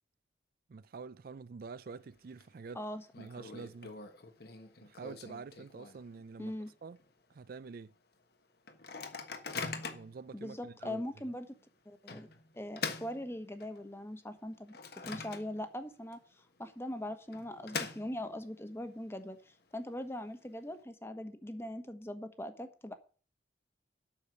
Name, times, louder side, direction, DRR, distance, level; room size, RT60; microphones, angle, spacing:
voice 1, 0.7-2.8 3.2-3.9 4.8-6.5 6.8-7.0 7.3-7.9 9.7-11.0, right 4 dB, 55° right, 0.4 m, -47 dB
Microwave oven, 1.9-2.4 2.7-2.8 3.1-6.2 6.6-6.7 7.0-7.3 7.8-7.9 8.7-10.2 10.8-10.9 12.1-13.9 14.3-15.8 16.1-16.2 17.1-18.5, left 4 dB, 60° left, 1.4 m, -43 dB
voice 2, 6.4-6.7 10.3-11.5 11.8-12.3 12.5-14.8 15.0-16.2 16.6-22.9, left 1 dB, 15° left, 1.2 m, -41 dB
8.4 x 6.6 x 8.1 m
head